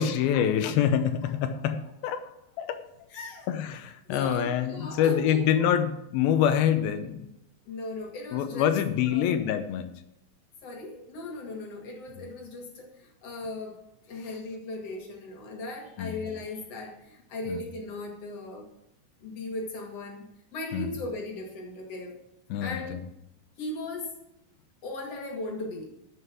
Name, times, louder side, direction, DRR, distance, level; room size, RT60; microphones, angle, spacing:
voice 1, 0.0-2.3 2.6-2.8 3.5-7.3 8.3-9.9 16.0-16.1 17.5-17.6 20.7-20.9 22.5-23.0, left 9 dB, 85° left, 9 dB, 2.8 m, -26 dB
voice 2, 3.1-3.5 4.1-5.6 7.7-8.7 9.1-9.3 10.6-13.8 14.1-18.7 19.2-20.3 20.5-22.1 22.6-23.0 23.6-24.1 24.8-25.9, left 2 dB, 45° left, 1 dB, 2.7 m, -37 dB
9.7 x 7.6 x 6.2 m, 0.83 s
omnidirectional pair, 4.3 m